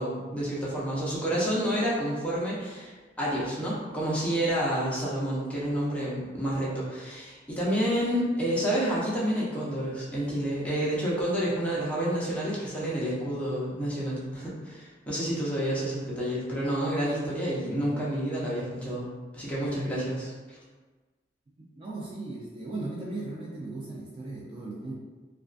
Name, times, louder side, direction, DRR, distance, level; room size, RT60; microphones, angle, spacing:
voice 1, 0.0-19.1 19.3-20.6, equal, 10° left, -8 dB, 0.7 m, -29 dB
voice 2, 21.8-24.9, right 2 dB, 30° right, -5 dB, 0.3 m, -37 dB
2.3 x 2.3 x 2.4 m, 1.3 s
head